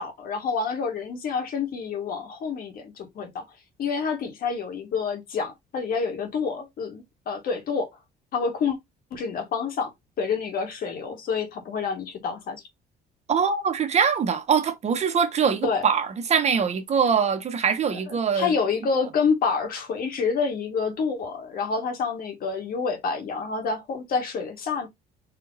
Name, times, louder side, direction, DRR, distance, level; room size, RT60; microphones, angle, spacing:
voice 1, 0.0-3.4 3.8-7.9 8.3-8.8 9.1-9.9 10.2-12.6 15.6-15.9 18.1-24.9, left 5 dB, 60° left, 1.9 m, -28 dB
voice 2, 13.3-18.5, right 6 dB, 40° right, 0.9 m, -23 dB
4.5 x 2.8 x 3.9 m
cardioid pair, 110°, 17 cm